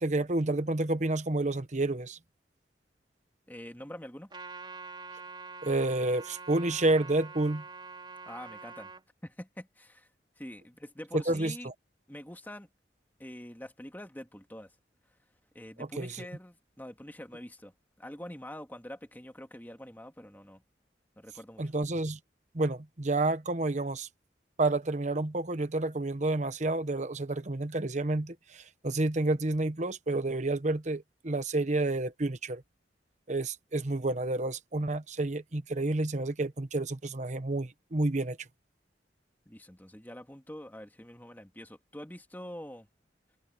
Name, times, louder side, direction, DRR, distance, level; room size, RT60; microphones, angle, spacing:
voice 1, 0.0-2.2 5.6-7.6 11.1-11.7 15.8-16.3 21.6-22.2 22.5-24.1 24.6-32.6 33.3-38.4, right 2 dB, 45° right, 1.0 m, -30 dB
voice 2, 3.5-4.3 8.3-8.9 9.2-10.1 10.4-11.7 12.1-12.7 13.2-14.7 15.5-17.7 18.0-20.6 21.2-21.6 39.5-42.9, left 1 dB, 10° left, 2.5 m, -45 dB
Trumpet, 4.3-9.0, right 4 dB, 25° right, 4.4 m, -45 dB
head